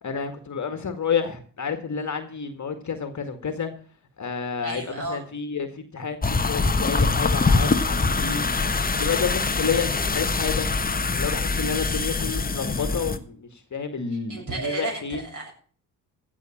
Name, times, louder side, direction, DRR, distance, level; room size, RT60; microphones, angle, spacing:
voice 1, 0.0-3.7 4.2-8.4 9.0-10.7 11.1-15.2, left 6 dB, 35° left, 8 dB, 2.0 m, -30 dB
voice 2, 4.6-5.2 14.3-15.5, right 3 dB, 40° right, 0 dB, 7.4 m, -32 dB
sound 1, 6.2-13.2, left 3 dB, 20° left, 1.2 m, -24 dB
16.0 x 6.0 x 7.3 m, 0.43 s
hypercardioid pair, 50°, 48 cm